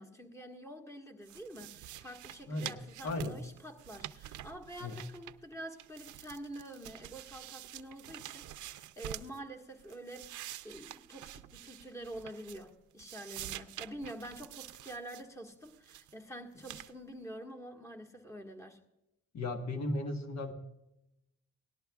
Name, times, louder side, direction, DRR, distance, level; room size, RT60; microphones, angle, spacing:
voice 1, 0.0-18.8, right 1 dB, 10° left, 4 dB, 1.6 m, -47 dB
sound 1, 1.2-5.5 5.8-9.4 9.8-12.7 13.0-15.2 15.6-16.1 16.6-16.9, right 13 dB, 75° right, 0.6 m, -47 dB
voice 2, 3.0-3.4 4.8-4.9 19.3-20.5, left 2 dB, 60° left, 5 dB, 1.4 m, -35 dB
18.0 x 12.0 x 2.3 m, 0.89 s
cardioid pair, 90°, 30 cm